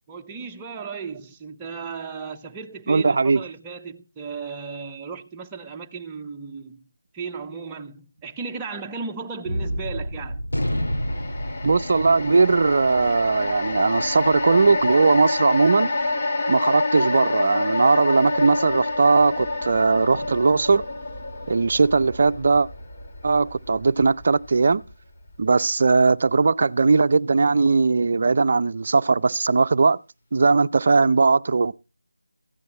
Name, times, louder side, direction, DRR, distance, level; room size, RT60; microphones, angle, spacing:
voice 1, 0.1-6.9 7.1-10.4, right 5 dB, 10° right, 0.8 m, -35 dB
voice 2, 2.9-3.4 11.6-15.9 16.5-20.8 21.5-22.7 23.2-24.8 25.4-30.0 30.3-31.7, right 4 dB, 45° right, 0.5 m, -19 dB
Gunshot gunfire, 9.5-16.0, equal, 90° left, 3.7 m, -31 dB
sound 1, 10.6-24.9 25.3-25.4, left 2 dB, 35° left, 2.1 m, -28 dB
14.5 x 9.4 x 4.1 m
figure-of-eight pair, 165°, 0 cm